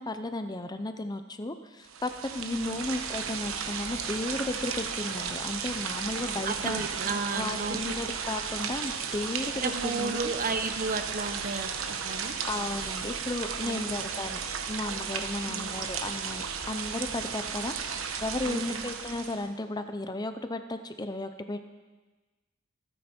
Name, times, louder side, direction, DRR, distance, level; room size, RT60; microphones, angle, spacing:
voice 1, 0.0-6.8 7.3-10.3 12.5-14.4 14.7-21.7, left 2 dB, 20° left, 9 dB, 0.7 m, -34 dB
sound 1, 1.8-19.5, right 6 dB, 85° right, 1.1 m, -34 dB
voice 2, 2.4-2.8 6.4-7.9 9.6-12.4 13.6-14.0 15.4-15.8 18.4-18.9, right 3 dB, 45° right, 7 dB, 1.1 m, -34 dB
26.0 x 9.6 x 4.5 m, 1.2 s
head